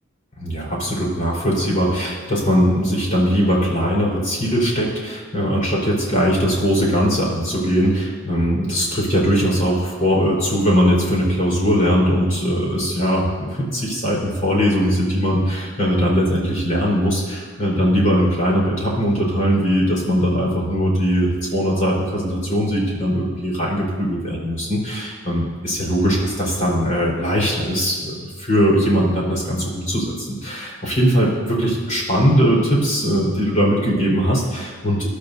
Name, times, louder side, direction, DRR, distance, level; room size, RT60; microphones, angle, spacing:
voice 1, 0.4-35.1, equal, 40° left, -4 dB, 4.5 m, -20 dB
22.0 x 11.5 x 2.8 m, 1.5 s
head